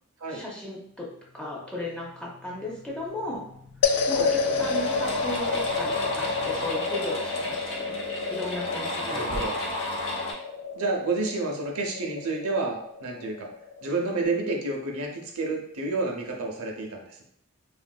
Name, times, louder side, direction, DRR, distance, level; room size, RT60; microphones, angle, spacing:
voice 1, 0.3-1.1 1.3-3.4 4.1-8.0 8.3-9.4, left 1 dB, 5° left, -4 dB, 0.5 m, -35 dB
sound 1, 0.9-6.7 9.2-10.0, left 1 dB, 35° left, 1.2 m, -46 dB
sound 2, 3.6-3.7 4.1-10.3, left 1 dB, 55° left, 0.8 m, -33 dB
sound 3, 3.8-14.3, left 5 dB, 85° left, 0.3 m, -30 dB
voice 2, 4.2-4.6 9.0-9.5 10.8-13.5 13.8-17.2, right 3 dB, 70° right, 1 dB, 0.6 m, -30 dB
3.6 x 2.5 x 2.2 m, 0.70 s
head